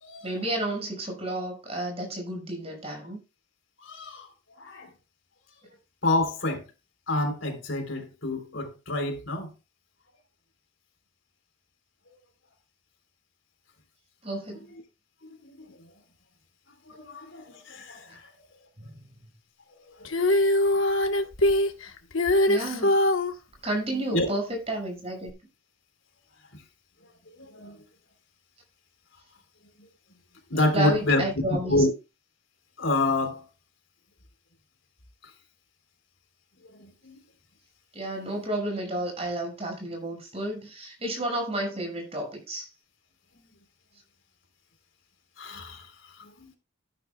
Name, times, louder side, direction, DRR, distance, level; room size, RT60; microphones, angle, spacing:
voice 1, 0.2-3.2 14.2-14.6 18.8-18.9 22.5-23.0 23.6-25.3 30.5-31.8 37.9-42.7, right 1 dB, 30° right, 6.2 m, -31 dB
voice 2, 3.8-4.3 4.6-4.9 6.0-6.6 7.1-9.5 15.4-15.5 16.9-18.2 20.0-20.1 24.1-24.3 27.5-27.8 30.5-31.2 31.7-31.9 32.8-33.4 36.8-37.1 45.4-45.9 46.2-46.3, left 2 dB, 70° left, 3.8 m, -27 dB
Female singing, 20.0-23.3 25.3-25.4, left 1 dB, 90° left, 1.4 m, -22 dB
13.0 x 11.5 x 2.3 m
head